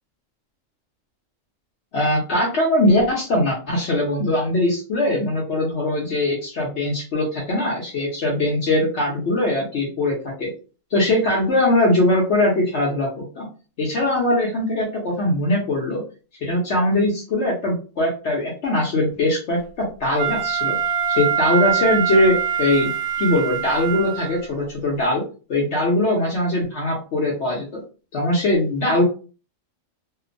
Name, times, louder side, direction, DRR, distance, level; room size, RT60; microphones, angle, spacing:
voice 1, 1.9-10.5 10.9-13.5 13.8-16.0 16.4-19.6 20.0-20.8 21.1-22.9 23.2-25.2 25.5-27.8 28.1-29.0, left 1 dB, 60° left, -3 dB, 1.0 m, -21 dB
Wind instrument woodwind instrument, 20.2-24.5, right 8 dB, 85° right, 1.1 m, -23 dB
2.8 x 2.1 x 2.5 m, 0.36 s
omnidirectional pair, 1.4 m